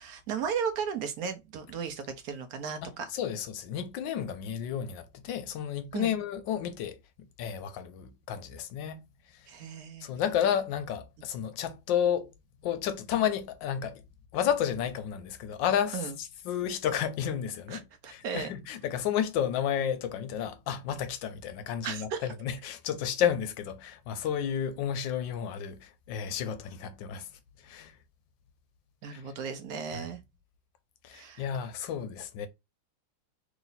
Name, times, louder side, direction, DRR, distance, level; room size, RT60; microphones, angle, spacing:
voice 1, 0.0-3.1 5.9-6.1 9.5-10.1 15.9-16.1 17.7-18.5 21.8-22.3 29.0-30.2 31.1-31.5, right 6 dB, 80° right, 0.8 m, -35 dB
voice 2, 2.8-7.0 7.4-9.0 10.0-12.3 12.6-14.0 14.3-27.3 27.6-27.9 29.1-29.2 29.9-30.1 31.0-32.5, left 9 dB, 75° left, 1.2 m, -31 dB
3.0 x 3.0 x 3.9 m
omnidirectional pair, 2.2 m